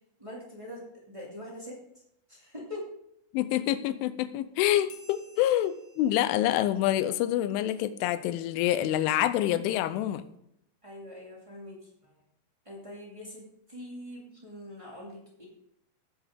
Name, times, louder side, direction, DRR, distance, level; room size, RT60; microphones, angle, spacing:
voice 1, 0.2-1.8 2.3-2.8 10.8-12.2 12.6-13.4 13.7-15.4, left 1 dB, 20° right, -4 dB, 0.8 m, -43 dB
voice 2, 3.3-10.2, left 13 dB, 90° left, 12 dB, 3.1 m, -27 dB
sound 1, 4.9-7.9, left 3 dB, 65° left, 3.0 m, -58 dB
17.5 x 7.7 x 3.7 m, 0.75 s
omnidirectional pair, 5.5 m